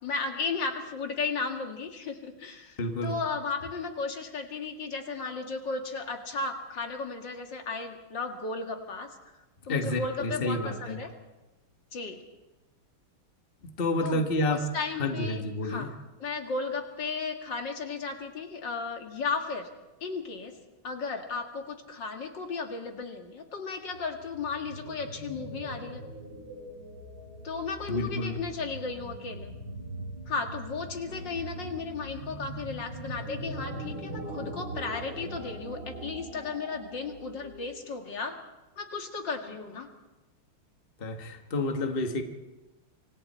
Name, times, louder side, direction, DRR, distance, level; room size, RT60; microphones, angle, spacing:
voice 1, 0.0-9.2 9.7-11.1 11.9-12.2 14.0-19.7 20.0-20.5 20.8-26.0 27.4-29.5 30.3-38.4 38.8-39.9, left 4 dB, 60° left, 4 dB, 2.6 m, -35 dB
voice 2, 2.8-3.1 9.7-11.0 13.8-14.7 15.0-15.9 27.9-28.4 41.0-42.2, left 2 dB, 30° left, 5 dB, 1.7 m, -29 dB
sound 1, 23.9-38.0, right 1 dB, 75° right, 6.2 m, -41 dB
27.5 x 26.0 x 4.4 m, 1.1 s
omnidirectional pair, 2.3 m